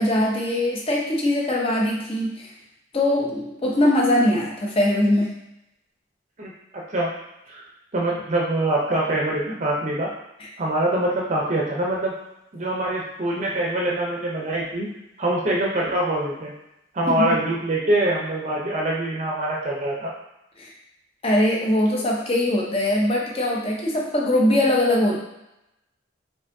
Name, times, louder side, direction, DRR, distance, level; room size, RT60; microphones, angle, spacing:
voice 1, 0.0-2.5 2.9-5.3 10.4-10.5 17.1-17.4 20.6-20.7 21.2-25.2, left 1 dB, 30° left, -2 dB, 0.7 m, -21 dB
voice 2, 6.4-7.1 7.5-7.6 7.9-10.1 10.6-12.1 12.5-14.9 15.2-16.5 16.9-20.1, right 1 dB, 35° right, -3 dB, 0.6 m, -24 dB
4.8 x 2.6 x 2.6 m, 0.86 s
head